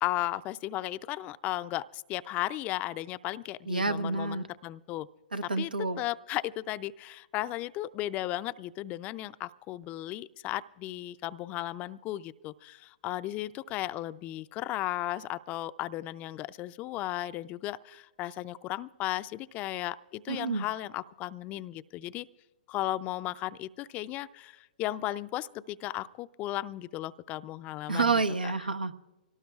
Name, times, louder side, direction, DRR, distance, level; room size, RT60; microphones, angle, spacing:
voice 1, 0.0-5.1 5.6-22.3 22.7-28.1, left 15 dB, 30° left, 15 dB, 0.4 m, -35 dB
voice 2, 3.7-4.4 5.3-6.0 20.3-20.7 27.9-29.0, right 3 dB, 90° right, 9 dB, 1.0 m, -29 dB
25.0 x 18.5 x 2.4 m, 1.0 s
hypercardioid pair, 115°, 5 cm